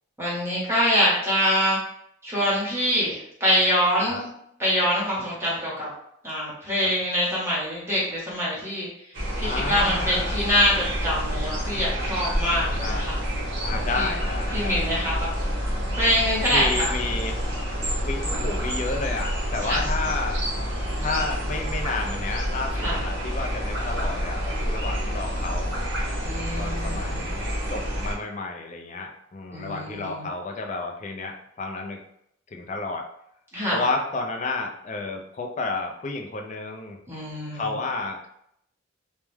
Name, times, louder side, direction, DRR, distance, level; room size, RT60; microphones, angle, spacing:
voice 1, 0.2-1.8 2.2-4.3 4.6-5.9 6.2-8.9 9.4-13.2 13.7-14.1 14.5-15.3 15.9-16.9 18.2-18.5 19.6-19.9 22.8-23.0 26.2-27.2 29.5-30.3 33.5-33.8 37.1-37.8, equal, 10° right, -6 dB, 0.9 m, -25 dB
sound 1, 9.1-28.2, equal, 60° right, 0.8 m, -28 dB
voice 2, 9.4-10.4 12.8-13.1 13.6-14.8 16.5-17.4 18.0-20.4 21.0-25.7 26.6-32.0 32.5-33.0 33.7-37.0 37.5-38.3, left 3 dB, 35° left, 2 dB, 0.4 m, -31 dB
2.2 x 2.1 x 3.1 m, 0.73 s
head